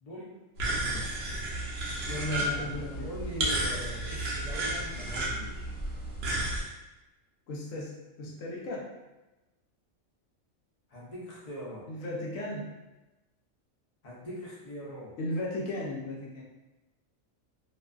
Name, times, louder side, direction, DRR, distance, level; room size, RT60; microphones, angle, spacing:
voice 1, 0.0-0.4 0.8-1.2 2.4-5.7 10.9-11.9 14.0-15.1, left 1 dB, 45° left, -6 dB, 0.5 m, -42 dB
sound 1, 0.6-6.6, right 1 dB, 60° right, 0.7 m, -32 dB
voice 2, 2.1-3.1 7.5-8.9 11.9-12.7 15.2-16.4, left 1 dB, 75° left, -3 dB, 1.0 m, -35 dB
2.5 x 2.3 x 2.3 m, 1.1 s
omnidirectional pair, 1.4 m